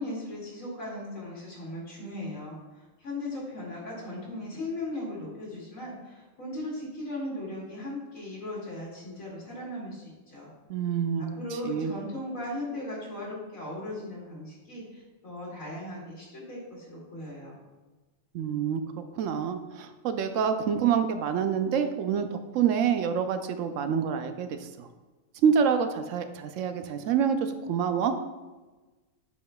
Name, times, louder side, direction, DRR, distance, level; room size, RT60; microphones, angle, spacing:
voice 1, 0.0-10.5 11.2-17.6, left 1 dB, 90° left, -5 dB, 2.6 m, -38 dB
voice 2, 10.7-11.3 11.6-11.9 18.3-18.8 19.2-24.9 25.4-28.1, right 7 dB, 75° right, 8 dB, 0.9 m, -27 dB
8.4 x 5.7 x 2.3 m, 1.2 s
omnidirectional pair, 1.4 m